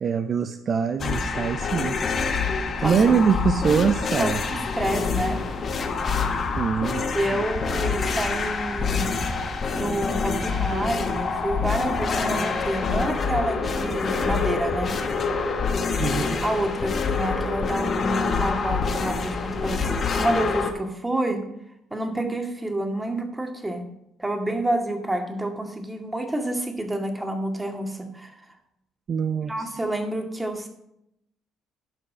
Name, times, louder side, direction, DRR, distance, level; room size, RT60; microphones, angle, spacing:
voice 1, 0.0-2.0 2.8-4.4 5.2-5.3 6.6-7.4 16.0-16.4 29.1-29.5, right 6 dB, 50° right, 9 dB, 0.6 m, -23 dB
sound 1, 1.0-20.7, left 4 dB, 50° left, 1.5 m, -26 dB
voice 2, 2.8-3.1 4.2-5.4 7.1-9.1 9.7-15.0 16.0-16.1 16.4-21.5 21.9-23.8 24.2-28.3 29.4-30.7, right 1 dB, 15° right, 4 dB, 2.0 m, -28 dB
12.0 x 5.4 x 5.6 m, 0.81 s
hypercardioid pair, 60°, 0 cm